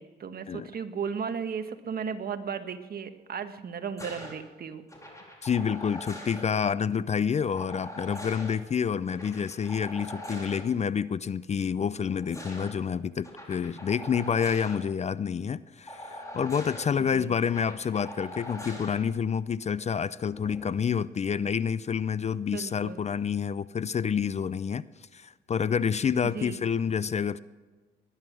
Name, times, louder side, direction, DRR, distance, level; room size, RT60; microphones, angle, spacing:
voice 1, 0.0-4.8 17.1-17.3 22.5-23.1 26.2-26.6, right 6 dB, 50° right, 9 dB, 1.3 m, -35 dB
sound 1, 4.0-4.3 4.9-6.4 7.5-8.5 9.1-10.6 11.9-12.7 13.2-14.8 15.9-16.9 17.4-19.0 20.3-20.7, left 1 dB, 15° left, 4.0 m, -42 dB
voice 2, 5.4-24.8 25.1-27.4, left 7 dB, 35° left, 18 dB, 0.4 m, -28 dB
20.0 x 11.0 x 6.2 m, 1.4 s
cardioid pair, 90°, 20 cm